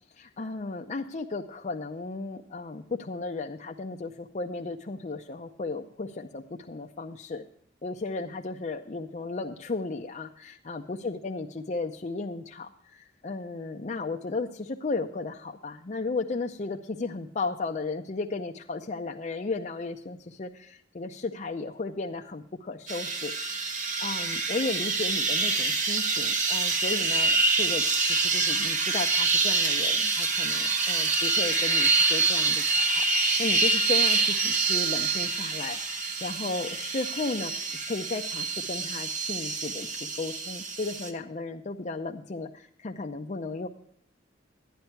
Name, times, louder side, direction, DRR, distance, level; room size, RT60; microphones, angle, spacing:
voice 1, 0.2-7.4 7.8-23.7 24.0-37.5 37.9-43.7, left 3 dB, 40° left, 2 dB, 0.6 m, -35 dB
sound 1, 22.9-41.1, right 3 dB, 45° right, 1.1 m, -26 dB
11.5 x 10.5 x 4.5 m, 0.65 s
head